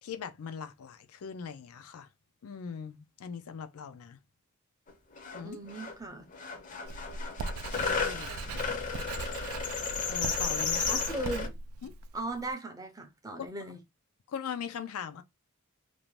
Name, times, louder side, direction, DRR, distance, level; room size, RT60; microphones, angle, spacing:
voice 1, 0.0-2.1 2.4-4.2 5.3-5.6 7.6-8.4 10.1-11.0 11.8-11.9 14.3-15.2, left 7 dB, 80° left, 0.4 m, -40 dB
sound 1, 4.9-5.0 5.2-6.0 6.3-11.5, left 5 dB, 35° left, 0.6 m, -33 dB
voice 2, 5.4-6.3 10.9-11.6 12.1-13.8, right 2 dB, 15° right, 0.5 m, -38 dB
Writing, 6.9-12.5, right 3 dB, 75° right, 0.3 m, -40 dB
2.6 x 2.1 x 3.0 m
head